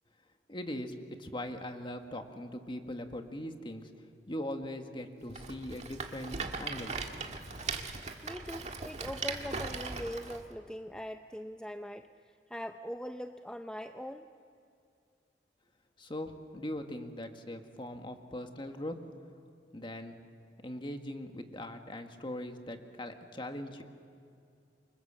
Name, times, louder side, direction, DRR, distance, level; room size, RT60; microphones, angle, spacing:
voice 1, 0.5-3.9 4.3-6.9 16.0-19.0 19.7-20.2 20.6-23.8, left 1 dB, 30° left, 5 dB, 1.7 m, -40 dB
Rattle, 5.3-10.4, right 4 dB, 40° right, 1.8 m, -39 dB
voice 2, 8.2-14.3, equal, 5° left, 6 dB, 0.6 m, -42 dB
28.5 x 25.0 x 7.5 m, 2.4 s
head